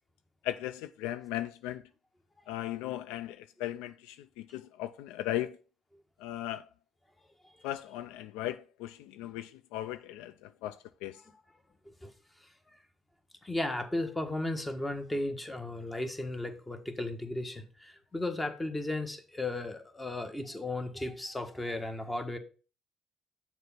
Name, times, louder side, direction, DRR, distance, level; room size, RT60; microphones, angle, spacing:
voice 1, 0.4-1.8 2.5-5.6 6.2-6.6 7.6-11.2, left 13 dB, 80° left, 0.4 m, -37 dB
voice 2, 12.4-12.8 13.4-22.4, left 2 dB, 15° left, 1.5 m, -35 dB
6.6 x 4.4 x 5.7 m
hypercardioid pair, 60°, 0 cm